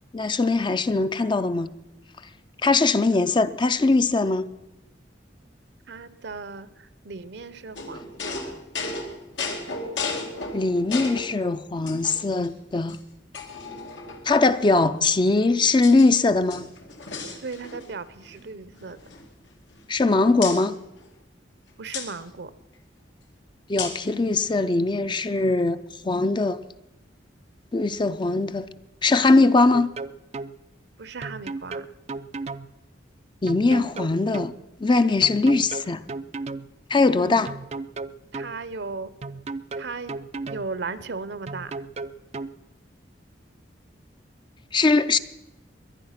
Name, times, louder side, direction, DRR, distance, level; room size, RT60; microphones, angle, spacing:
voice 1, 0.1-1.7 2.6-4.5 10.5-13.0 14.3-16.7 19.9-20.8 23.7-25.8 26.0-26.6 27.7-28.7 29.0-29.9 33.4-34.5 34.8-36.0 36.9-37.5 44.7-45.2, left 3 dB, 25° left, 0.5 m, -21 dB
voice 2, 5.9-8.5 17.4-19.0 21.8-22.5 31.0-31.9 37.1-37.4 38.3-39.1 39.8-41.7, right 4 dB, 65° right, 0.8 m, -36 dB
sound 1, 7.7-11.3 11.9-12.5 12.9-13.0 13.3-14.4 15.2-16.1 16.4-17.9 18.2-18.4 18.7-20.0 20.4-20.6 21.9-22.1 23.8-24.1, left 4 dB, 90° left, 2.2 m, -34 dB
sound 2, 29.7-30.5 31.2-32.7 33.5-34.5 35.2-36.7 37.5-38.5 39.2-40.7 41.5-42.5, right 3 dB, 35° right, 0.4 m, -34 dB
21.5 x 9.7 x 5.8 m
head